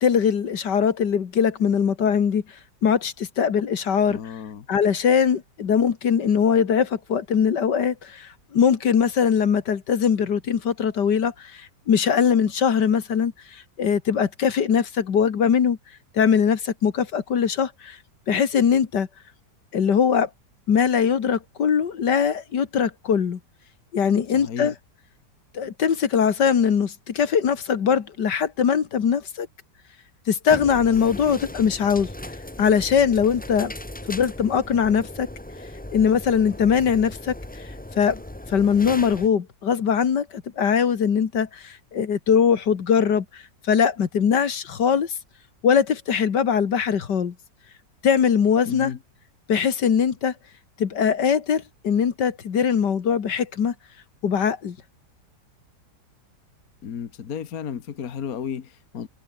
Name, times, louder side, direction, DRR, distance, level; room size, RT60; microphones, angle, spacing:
voice 1, 0.0-2.4 2.8-4.2 4.7-15.8 16.1-18.0 18.3-19.1 19.7-20.3 20.7-23.4 23.9-24.7 25.5-29.5 30.3-32.1 32.6-33.7 34.1-35.3 35.9-37.6 38.0-38.2 38.5-45.1 45.6-47.3 48.0-48.9 49.5-50.3 50.8-53.7 54.2-54.8, left 7 dB, 80° left, 2.3 m, -21 dB
voice 2, 4.1-4.7 24.3-24.8 48.6-49.0 56.8-59.1, left 8 dB, 60° left, 1.7 m, -33 dB
sound 1, 30.5-39.3, left 1 dB, 5° left, 1.0 m, -38 dB
omnidirectional pair, 1.8 m